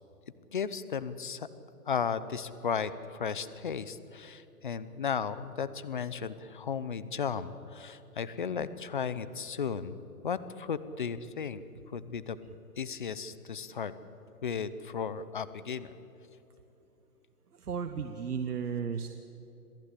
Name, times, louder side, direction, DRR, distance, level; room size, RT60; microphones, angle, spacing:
voice 1, 0.5-1.5 1.9-12.4 12.8-13.9 14.4-15.9, left 6 dB, 30° left, 15 dB, 0.7 m, -35 dB
voice 2, 17.5-19.1, right 6 dB, 70° right, 8 dB, 1.4 m, -34 dB
26.5 x 16.0 x 8.3 m, 3.0 s
hypercardioid pair, 160°, 47 cm